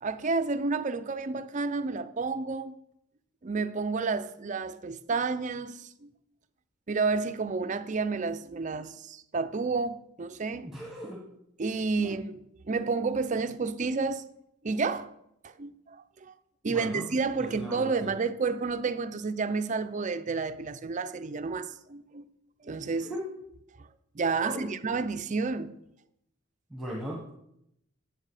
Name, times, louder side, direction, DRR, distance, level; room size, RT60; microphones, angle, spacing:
voice 1, 0.0-2.7 3.4-6.1 6.9-10.7 11.6-12.4 12.7-14.2 14.6-15.1 15.4-16.0 16.2-16.3 16.6-22.3 22.6-23.1 24.1-25.8, right 4 dB, 35° right, 0.5 m, -30 dB
voice 2, 10.6-11.2 12.0-12.2 16.7-17.0 17.4-18.1 23.0-23.2 24.4-24.7 26.7-27.3, equal, ahead, 1.3 m, -38 dB
9.5 x 7.9 x 4.9 m
head